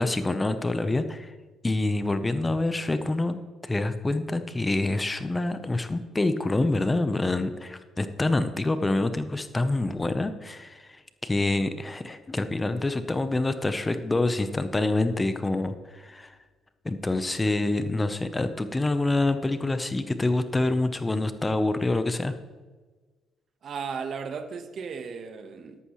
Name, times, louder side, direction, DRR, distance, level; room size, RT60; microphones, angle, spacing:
voice 1, 0.0-1.3 1.6-3.4 3.6-10.9 11.2-16.4 16.8-22.3, left 2 dB, 20° left, 10 dB, 0.9 m, -26 dB
voice 2, 23.6-25.8, right 6 dB, 60° right, 9 dB, 1.3 m, -35 dB
13.0 x 11.5 x 3.2 m, 1.3 s
supercardioid pair, 65°, 0 cm